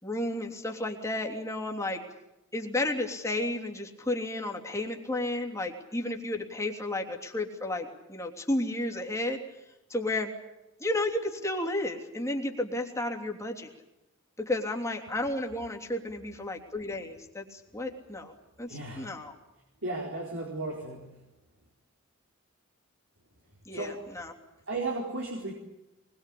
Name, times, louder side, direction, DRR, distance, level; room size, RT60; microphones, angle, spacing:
voice 1, 0.0-2.0 2.5-9.4 9.9-10.3 10.8-13.7 14.4-19.3 23.6-24.3, left 1 dB, 15° left, 1 dB, 3.2 m, -32 dB
voice 2, 18.7-19.1 19.8-21.1 23.7-24.0 24.7-25.5, right 2 dB, 65° right, -1 dB, 4.4 m, -34 dB
24.0 x 21.5 x 8.6 m, 0.94 s
head